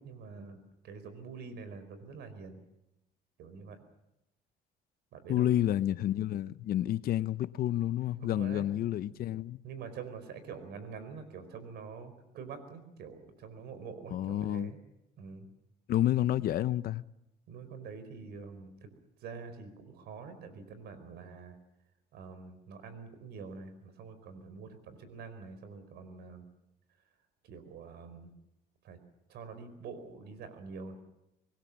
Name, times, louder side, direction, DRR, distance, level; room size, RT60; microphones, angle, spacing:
voice 1, 0.0-2.6 3.4-3.8 5.1-5.5 8.2-8.7 9.1-9.2 9.6-14.8 15.2-15.5 17.5-18.9 19.2-21.6 22.1-26.4 27.4-28.3 28.8-29.0 29.3-31.0, right 5 dB, 75° right, 4.8 m, -46 dB
voice 2, 5.3-9.6 14.1-14.7 15.9-17.0, left 12 dB, 60° left, 0.8 m, -29 dB
25.0 x 20.5 x 7.3 m
cardioid pair, 110°, 17 cm